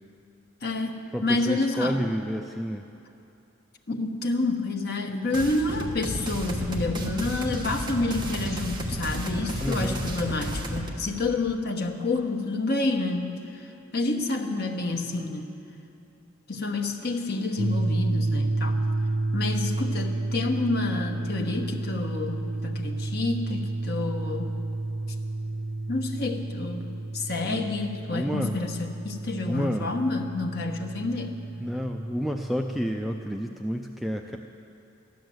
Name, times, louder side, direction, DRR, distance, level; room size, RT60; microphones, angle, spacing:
voice 1, 0.6-2.0 3.9-15.6 16.5-18.8 19.3-24.6 25.9-31.4, left 2 dB, 55° left, 3 dB, 1.2 m, -29 dB
voice 2, 1.1-2.8 9.6-10.0 27.4-27.7 28.1-28.5 29.4-29.9 31.6-34.4, equal, ahead, 3 dB, 0.4 m, -30 dB
sound 1, 5.3-10.9, equal, 20° right, 1.5 m, -32 dB
sound 2, 17.6-33.4, right 2 dB, 85° right, 0.7 m, -31 dB
14.5 x 11.5 x 7.8 m, 2.9 s
head